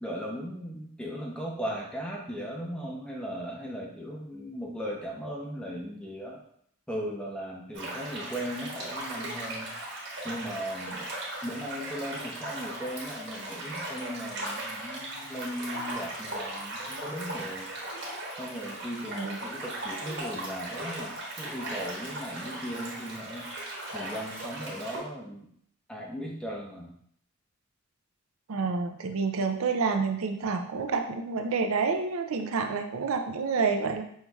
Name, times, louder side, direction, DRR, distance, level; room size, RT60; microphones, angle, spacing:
voice 1, 0.0-6.4 6.9-9.7 10.2-11.1 11.4-17.7 18.4-23.5 23.9-25.5 25.9-26.9, equal, 5° left, -2 dB, 0.5 m, -37 dB
sound 1, 7.7-25.0, right 1 dB, 50° right, 1.2 m, -38 dB
voice 2, 28.5-34.0, right 4 dB, 75° right, 6 dB, 0.5 m, -28 dB
5.4 x 3.1 x 2.3 m, 0.68 s
head